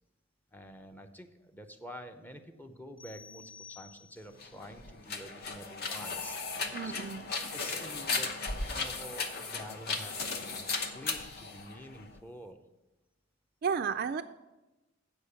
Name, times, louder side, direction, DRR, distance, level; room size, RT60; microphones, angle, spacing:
voice 1, 0.5-8.3 8.7-10.7 10.9-12.6, equal, 10° left, 6 dB, 0.6 m, -48 dB
sound 1, 3.0-4.5, left 6 dB, 25° left, 1.1 m, -52 dB
sound 2, 4.3-12.2, left 4 dB, 50° left, 0.9 m, -36 dB
voice 2, 6.7-7.2 13.6-14.2, right 6 dB, 50° right, 8 dB, 0.3 m, -32 dB
8.3 x 5.2 x 6.9 m, 1.0 s
head